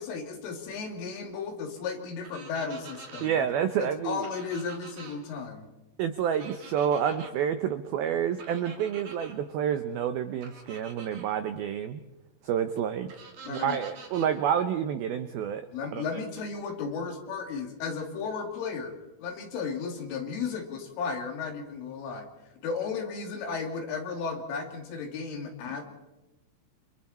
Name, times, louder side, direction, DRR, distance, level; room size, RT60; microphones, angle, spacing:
voice 1, 0.0-3.5 3.8-5.7 13.5-13.9 15.7-18.9 19.2-22.3 22.6-25.8, left 5 dB, 80° left, 3 dB, 5.3 m, -34 dB
sound 1, 2.2-3.3 4.2-5.2 6.3-7.3 8.4-9.3 10.4-11.3 13.1-14.3, right 4 dB, 45° right, 3.5 m, -46 dB
voice 2, 3.2-4.3 6.0-12.0 12.4-13.1 13.5-15.7 15.9-16.0, right 8 dB, 90° right, 9 dB, 2.1 m, -29 dB
29.5 x 26.0 x 4.4 m, 1.0 s
omnidirectional pair, 5.6 m